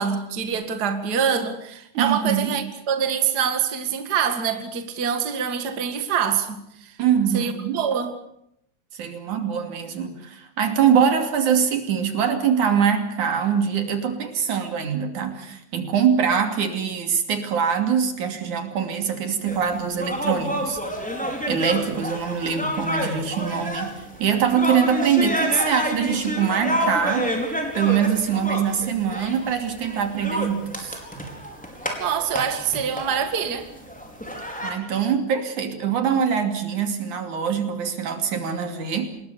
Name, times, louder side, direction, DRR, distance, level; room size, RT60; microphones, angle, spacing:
voice 1, 0.0-7.0 7.3-8.2 32.0-33.7, right 7 dB, 35° right, 2.3 m, -25 dB
voice 2, 1.9-2.6 7.0-7.8 8.9-20.8 21.5-27.4 27.8-31.0 34.6-39.1, right 7 dB, 75° right, 4.2 m, -23 dB
sound 1, 19.5-34.7, equal, ahead, 4.6 m, -29 dB
26.5 x 21.0 x 6.9 m
omnidirectional pair, 3.4 m